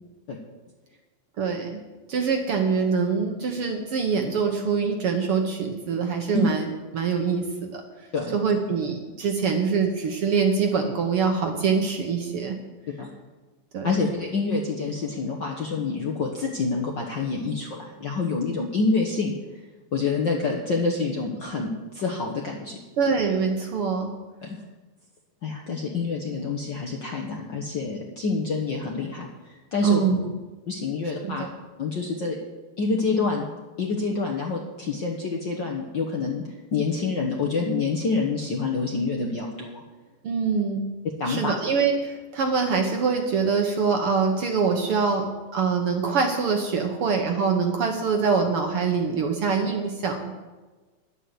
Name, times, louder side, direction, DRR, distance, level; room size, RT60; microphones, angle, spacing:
voice 1, 1.4-1.8 2.1-7.8 8.3-12.6 13.7-13.9 23.0-24.1 29.8-30.3 31.2-31.5 40.2-40.9 41.3-50.4, right 5 dB, 60° right, 4 dB, 1.6 m, -24 dB
voice 2, 13.8-19.3 19.9-22.8 24.4-24.6 25.4-30.0 30.7-31.4 31.8-32.4 32.8-33.5 33.8-36.4 36.7-39.8 41.2-41.5, left 4 dB, 60° left, 0 dB, 1.2 m, -27 dB
11.0 x 8.2 x 7.6 m, 1.3 s
omnidirectional pair, 3.5 m